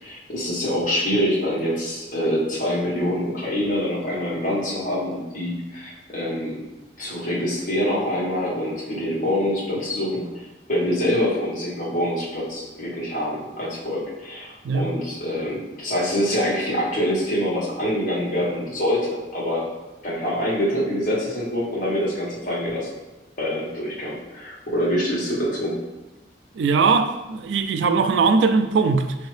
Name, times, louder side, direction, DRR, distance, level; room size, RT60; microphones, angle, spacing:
voice 1, 0.0-6.6 7.0-10.3 10.7-19.7 20.0-22.9 23.4-25.8, equal, 45° left, 1.2 m, -25 dB
voice 2, 26.6-29.1, right 4 dB, 75° right, 0.3 m, -20 dB
4.3 x 2.7 x 3.2 m
head